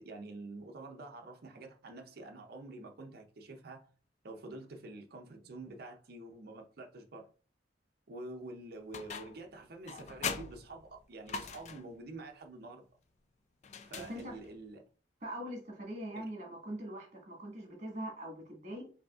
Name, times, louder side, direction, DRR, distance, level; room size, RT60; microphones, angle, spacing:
voice 1, 0.0-3.9 4.2-7.3 8.1-12.9 13.8-14.8 16.1-16.2, right 2 dB, 55° right, 0.5 m, -47 dB
sound 1, 8.9-9.5 9.9-12.0 13.6-14.6, left 6 dB, 40° left, 0.4 m, -41 dB
voice 2, 13.9-14.4 15.2-18.9, right 1 dB, 40° right, 1.5 m, -42 dB
4.9 x 2.7 x 2.4 m
head